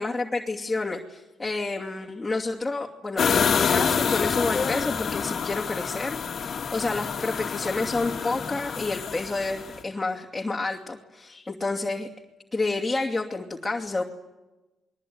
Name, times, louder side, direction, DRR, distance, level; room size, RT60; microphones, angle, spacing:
voice 1, 0.0-12.1 12.5-14.0, left 3 dB, 15° left, 0 dB, 2.7 m, -29 dB
sound 1, 3.2-9.8, left 6 dB, 50° left, 1.9 m, -27 dB
28.5 x 22.0 x 9.5 m, 1.1 s
cardioid pair, 90°, 0 cm